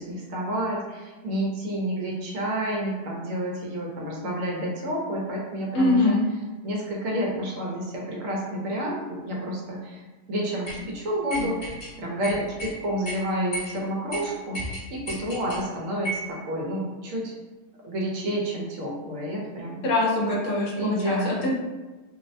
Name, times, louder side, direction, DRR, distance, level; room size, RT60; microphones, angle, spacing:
voice 1, 0.0-6.2 6.6-17.4 17.8-19.8 20.8-21.5, right 1 dB, 70° right, -2 dB, 0.9 m, -30 dB
voice 2, 5.7-6.2 19.8-21.5, left 2 dB, 70° left, -3 dB, 0.9 m, -23 dB
sound 1, 10.7-10.8 11.3-11.9 12.2-12.7 13.0-13.2 13.5-13.7 14.1-14.2 14.5-15.6 16.0-16.3, right 1 dB, 25° left, 0.6 m, -33 dB
2.6 x 2.0 x 2.5 m, 1.2 s
omnidirectional pair, 1.5 m